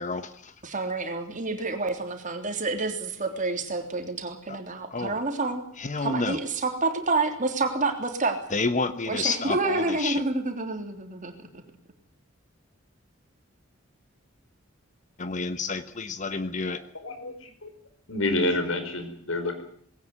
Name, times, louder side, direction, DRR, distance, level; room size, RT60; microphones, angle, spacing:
voice 1, 0.0-0.5 4.5-4.6 4.9-5.2 5.8-6.4 8.5-10.2 15.2-16.8, left 4 dB, 40° left, 11 dB, 1.1 m, -30 dB
voice 2, 0.6-5.6 6.0-8.4 9.1-11.6, right 3 dB, 40° right, 5 dB, 3.4 m, -28 dB
voice 3, 16.6-17.7 18.1-19.6, left 2 dB, 80° left, 7 dB, 5.0 m, -29 dB
20.5 x 17.5 x 9.7 m, 0.63 s
head